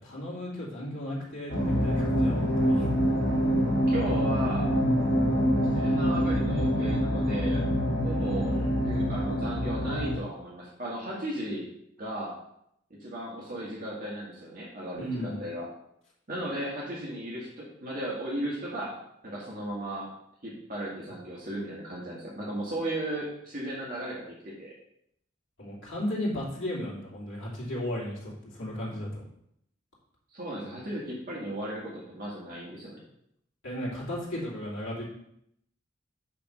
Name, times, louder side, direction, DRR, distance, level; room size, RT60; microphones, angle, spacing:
voice 1, 0.0-2.9 8.2-8.9 15.0-15.4 25.6-29.2 33.6-35.1, left 1 dB, 85° left, -6 dB, 2.9 m, -35 dB
sound 1, 1.5-10.2, equal, 65° left, 2.9 m, -25 dB
voice 2, 3.9-4.7 5.7-7.7 8.0-11.7 12.0-12.4 13.0-15.7 16.3-18.9 19.2-20.1 20.4-24.7 30.3-33.0, right 1 dB, 45° right, -5 dB, 1.6 m, -36 dB
8.3 x 3.5 x 6.0 m, 0.75 s
head